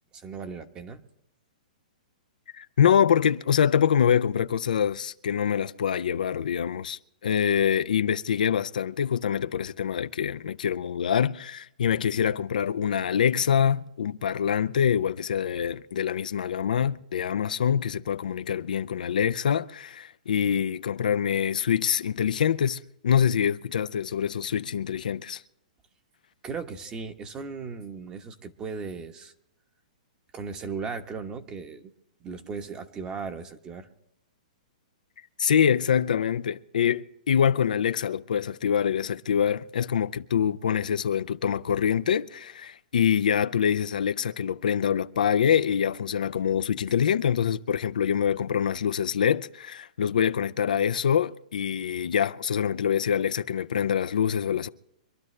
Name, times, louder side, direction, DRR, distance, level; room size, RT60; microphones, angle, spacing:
voice 1, 0.1-1.0 26.4-29.3 30.3-31.9 32.2-33.9, right 5 dB, 20° right, 1.1 m, -37 dB
voice 2, 2.5-25.4 35.4-54.7, left 8 dB, 80° left, 0.6 m, -25 dB
25.0 x 12.0 x 3.3 m
hypercardioid pair, 145°, 4 cm